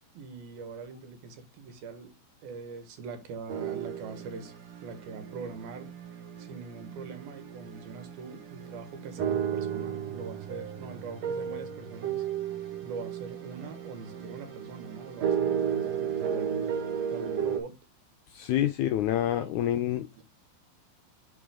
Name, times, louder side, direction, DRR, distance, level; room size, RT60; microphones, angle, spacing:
voice 1, 0.1-2.1 2.4-4.5 4.8-5.9 6.4-12.2 12.8-16.8 17.1-17.8 18.5-18.6 18.9-19.0 19.4-19.8 20.2-20.3, right 5 dB, 85° right, 3.5 m, -42 dB
sound 1, 3.5-17.6, right 8 dB, 55° right, 2.6 m, -34 dB
voice 2, 18.3-20.1, left 12 dB, 80° left, 1.7 m, -27 dB
9.8 x 4.7 x 3.8 m
omnidirectional pair, 4.1 m